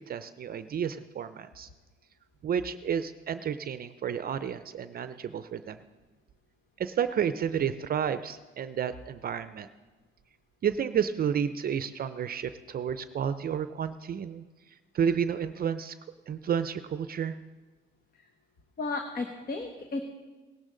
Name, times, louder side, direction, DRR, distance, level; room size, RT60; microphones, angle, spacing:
voice 1, 0.0-1.7 2.4-5.8 6.8-9.7 10.6-14.4 14.9-15.9 16.3-17.4, right 8 dB, 50° right, 12 dB, 0.5 m, -31 dB
voice 2, 18.8-20.0, left 3 dB, 45° left, 4 dB, 1.1 m, -33 dB
17.0 x 12.0 x 3.8 m, 1.2 s
cardioid pair, 90°, 20 cm